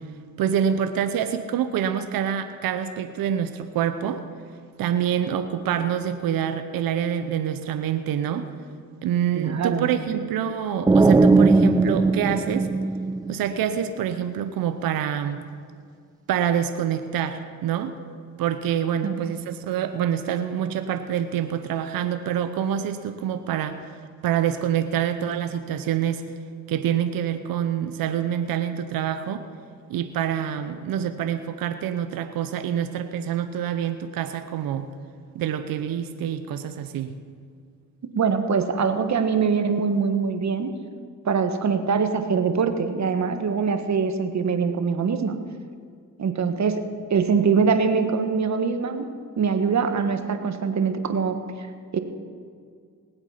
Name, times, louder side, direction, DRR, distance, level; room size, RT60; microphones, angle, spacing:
voice 1, 0.4-4.2 4.8-8.5 9.0-12.7 13.3-15.5 16.3-17.9 18.4-24.0 24.2-26.2 26.7-29.4 29.9-34.9 35.3-37.2, right 9 dB, 75° right, 9 dB, 0.8 m, -26 dB
voice 2, 9.4-9.9 19.0-19.2 38.1-40.7 41.2-45.4 46.2-46.8 47.1-49.1 49.4-51.4 51.9-52.0, right 5 dB, 50° right, 7 dB, 1.4 m, -23 dB
sound 1, 10.9-13.7, right 3 dB, 10° right, 0.4 m, -18 dB
19.0 x 8.1 x 5.7 m, 2.1 s
cardioid pair, 70°, 35 cm